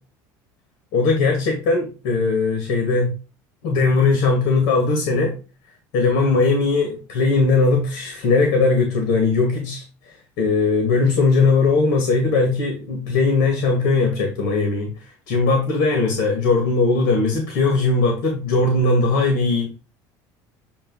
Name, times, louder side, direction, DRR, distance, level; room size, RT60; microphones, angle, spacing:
voice 1, 0.9-3.1 3.6-5.3 5.9-9.8 10.4-14.9 15.3-19.7, left 3 dB, 70° left, 2 dB, 2.2 m, -19 dB
8.6 x 2.9 x 5.5 m, 0.33 s
cardioid pair, 140°, 9 cm